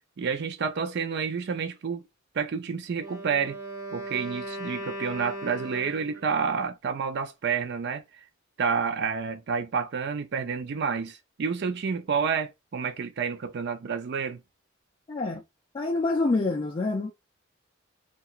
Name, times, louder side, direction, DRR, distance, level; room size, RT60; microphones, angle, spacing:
voice 1, 0.2-2.0 2.3-3.6 3.9-8.0 8.6-14.4, right 6 dB, 55° right, 0.4 m, -29 dB
Wind instrument woodwind instrument, 2.9-6.4, right 1 dB, 15° right, 0.6 m, -38 dB
voice 2, 15.1-15.4 15.7-17.1, left 3 dB, 25° left, 0.3 m, -26 dB
2.8 x 2.3 x 2.3 m
head